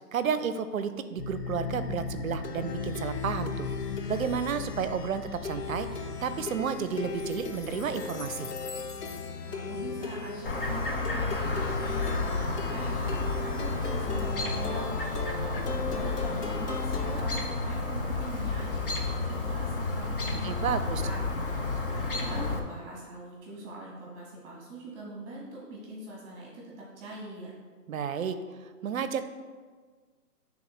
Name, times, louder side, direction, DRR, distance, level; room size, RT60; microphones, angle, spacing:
voice 1, 0.1-3.7 4.1-8.5 20.4-21.0 27.9-28.4 28.8-29.2, right 7 dB, 60° right, 11 dB, 0.5 m, -31 dB
Plucked string instrument, 1.2-17.2, left 4 dB, 70° left, 0.8 m, -37 dB
voice 2, 9.5-21.3 21.5-27.5, right 2 dB, 15° right, -4 dB, 1.2 m, -43 dB
Chirp tweet, 10.5-22.6, left 3 dB, 35° left, 0.5 m, -31 dB
9.8 x 3.5 x 3.1 m, 1.5 s
hypercardioid pair, 150°, 48 cm